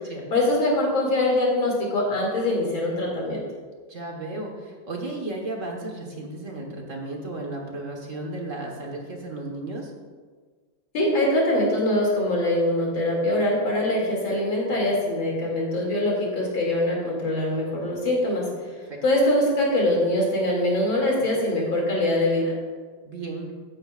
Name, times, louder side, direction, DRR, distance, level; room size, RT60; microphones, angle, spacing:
voice 1, 0.3-3.4 10.9-18.4 19.0-22.5, left 1 dB, 90° left, -3 dB, 3.3 m, -23 dB
voice 2, 3.9-9.9 23.0-23.5, right 2 dB, 45° right, 0 dB, 1.6 m, -34 dB
14.5 x 9.6 x 2.5 m, 1.5 s
omnidirectional pair, 2.1 m